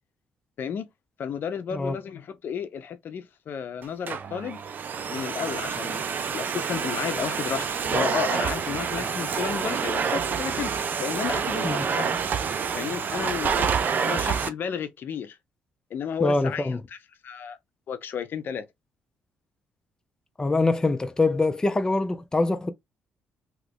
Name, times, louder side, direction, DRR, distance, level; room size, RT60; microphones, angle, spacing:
voice 1, 1.2-4.6 5.1-6.1 6.3-10.7 11.0-12.2 12.7-13.7 14.0-15.4 15.9-17.0 17.2-17.6 17.9-18.7, left 7 dB, 60° left, 0.6 m, -32 dB
Domestic sounds home sounds, 3.8-14.5, right 6 dB, 50° right, 0.5 m, -28 dB
voice 2, 16.2-16.8 20.4-22.7, left 2 dB, 15° left, 0.5 m, -24 dB
2.9 x 2.4 x 3.3 m
cardioid pair, 85°, 4 cm